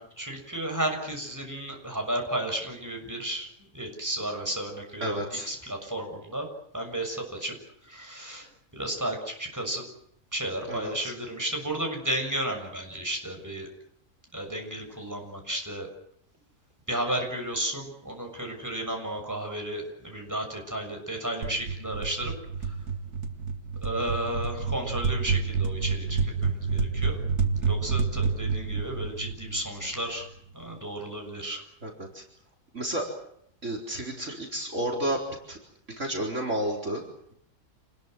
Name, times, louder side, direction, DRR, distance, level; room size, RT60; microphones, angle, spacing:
voice 1, 0.0-3.5 3.7-6.5 6.7-7.5 7.8-8.5 8.7-9.8 10.3-13.7 14.3-15.9 16.9-22.3 23.8-27.2 27.7-30.3 30.5-31.6, right 1 dB, 10° right, 2 dB, 6.7 m, -33 dB
voice 2, 5.0-5.5 10.7-11.1 31.8-32.2 32.7-33.1 33.6-35.2 35.5-35.6 36.0-37.0, right 1 dB, 50° right, 1 dB, 4.6 m, -31 dB
sound 1, 21.4-30.1, right 5 dB, 80° right, 2.5 m, -29 dB
28.0 x 21.0 x 7.8 m, 0.71 s
omnidirectional pair, 1.6 m